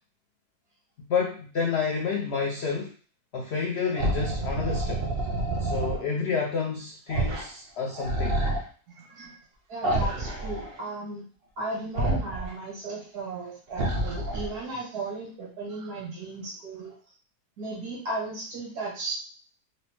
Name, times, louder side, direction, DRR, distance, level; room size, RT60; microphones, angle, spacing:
voice 1, 1.1-2.9 3.3-5.0 5.6-8.4, left 5 dB, 75° left, 0 dB, 0.6 m, -29 dB
sound 1, 4.0-6.0 7.1-7.5 7.8-8.6 9.8-10.7 11.9-12.5 13.7-14.6, right 2 dB, 60° right, 0.6 m, -28 dB
voice 2, 8.9-9.4 9.7-11.2 11.6-17.0 17.6-19.1, right 2 dB, 80° right, -4 dB, 1.9 m, -35 dB
4.0 x 2.0 x 2.9 m, 0.39 s
omnidirectional pair, 1.7 m